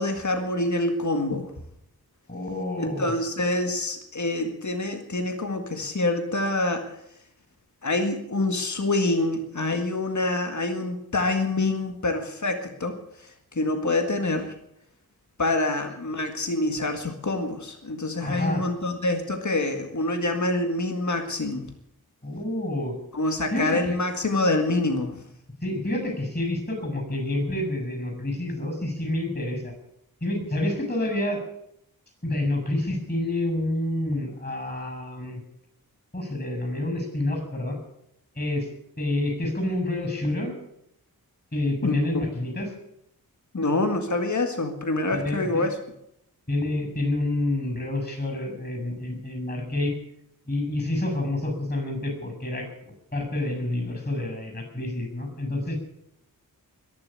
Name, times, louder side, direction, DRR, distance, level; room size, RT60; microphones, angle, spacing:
voice 1, 0.0-1.5 2.8-6.9 7.8-14.6 15.4-21.7 23.1-25.2 41.8-42.0 43.5-45.7, left 2 dB, 50° left, 5 dB, 1.8 m, -26 dB
voice 2, 2.3-3.1 18.2-18.7 22.2-22.9 23.5-24.0 25.6-29.7 30.2-31.4 32.2-35.4 36.1-37.8 38.4-38.7 39.0-40.5 41.5-42.7 45.1-45.7 46.5-49.9 50.5-52.7 53.1-55.8, left 1 dB, 25° left, 4 dB, 7.0 m, -28 dB
21.5 x 7.5 x 8.5 m, 0.77 s
wide cardioid pair, 55°, 37 cm